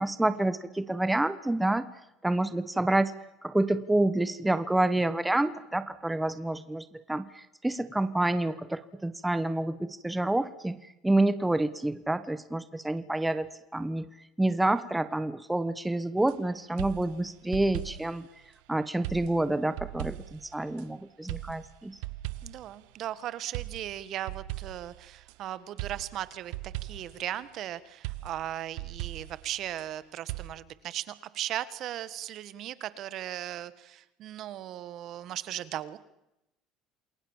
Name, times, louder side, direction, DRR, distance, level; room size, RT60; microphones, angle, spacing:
voice 1, 0.0-1.9 2.2-3.1 3.4-14.1 14.4-18.3 18.7-22.0, right 2 dB, 5° right, 13 dB, 1.2 m, -28 dB
sound 1, 16.2-16.4 16.8-18.2 19.0-20.9 21.3-22.8 23.5-25.4 25.8-27.3 28.0-29.9 30.3-30.5, right 17 dB, 80° right, 1.0 m, -39 dB
voice 2, 22.4-36.0, right 12 dB, 55° right, 16 dB, 1.5 m, -37 dB
28.5 x 21.0 x 7.4 m, 0.89 s
cardioid pair, 115°, 0 cm